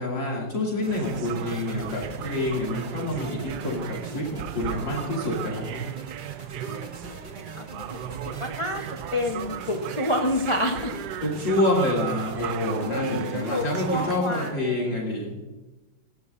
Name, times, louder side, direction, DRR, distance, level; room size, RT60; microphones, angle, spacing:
voice 1, 0.0-5.8 11.2-15.4, left 1 dB, 55° left, -4 dB, 3.3 m, -27 dB
sound 1, 0.8-14.5, right 1 dB, 25° right, 1.8 m, -43 dB
sound 2, 0.9-14.2, right 12 dB, 90° right, 0.9 m, -36 dB
voice 2, 7.6-8.0 8.4-8.8 9.1-10.9 12.4-12.6 12.9-15.1, left 1 dB, 25° left, 2 dB, 0.7 m, -29 dB
19.5 x 14.5 x 2.7 m, 1.1 s
omnidirectional pair, 2.4 m